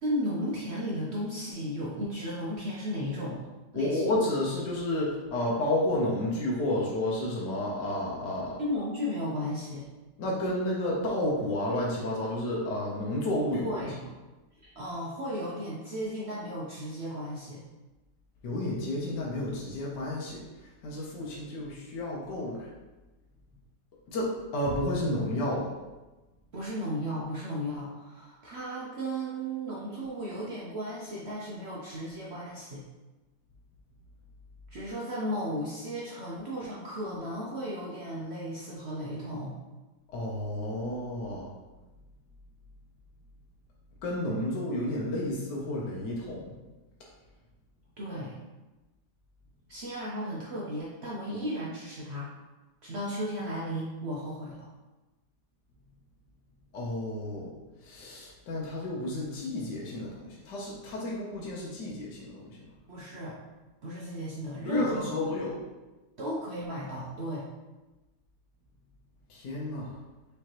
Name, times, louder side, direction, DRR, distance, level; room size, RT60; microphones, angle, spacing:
voice 1, 0.0-3.5 3.7-4.1 8.6-9.9 13.6-14.0 14.6-17.6 26.5-32.8 34.7-39.5 48.0-48.4 49.7-52.3 52.8-54.7 62.9-63.4 63.8-65.1 66.2-67.5, equal, 60° right, -5 dB, 0.7 m, -35 dB
voice 2, 3.7-8.6 10.2-13.7 18.4-20.4 20.8-22.7 24.1-25.7 40.1-41.5 44.0-46.5 56.7-57.5 57.8-62.7 64.6-65.6 69.3-69.9, left 1 dB, 75° left, -4 dB, 1.4 m, -31 dB
4.9 x 3.4 x 2.9 m, 1.1 s
omnidirectional pair, 1.8 m